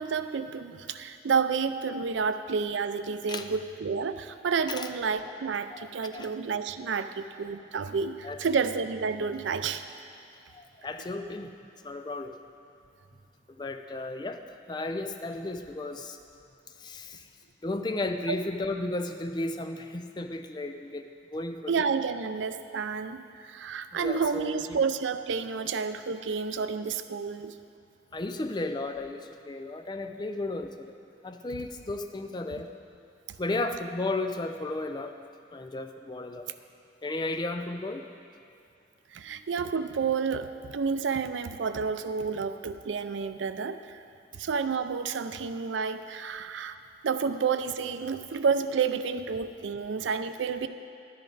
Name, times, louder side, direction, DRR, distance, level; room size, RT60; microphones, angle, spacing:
voice 1, 0.0-9.8 18.3-18.4 21.7-27.6 39.1-44.0 44.3-46.8 47.0-50.7, right 5 dB, 85° right, 11 dB, 0.4 m, -30 dB
voice 2, 5.7-6.6 8.2-8.4 10.5-11.5 11.8-12.3 13.6-14.4 14.7-16.2 16.8-17.3 17.6-21.1 21.3-21.7 23.9-24.8 28.1-30.9 31.2-32.7 33.4-35.1 35.5-36.5 37.0-38.0, left 2 dB, 25° left, 6 dB, 0.4 m, -34 dB
12.0 x 10.5 x 3.9 m, 2.5 s
head